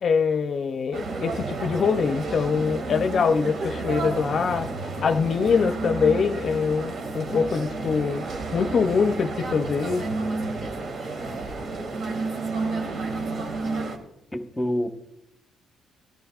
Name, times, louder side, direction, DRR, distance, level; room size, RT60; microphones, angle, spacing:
voice 1, 0.0-4.7 5.0-8.2 8.5-10.0, left 5 dB, 55° left, 8 dB, 0.5 m, -23 dB
sound 1, 0.9-14.0, right 3 dB, 60° right, 2.0 m, -31 dB
voice 2, 14.3-14.9, equal, 10° left, 6 dB, 1.2 m, -28 dB
15.5 x 11.5 x 2.4 m, 0.83 s
cardioid pair, 90°, 0 cm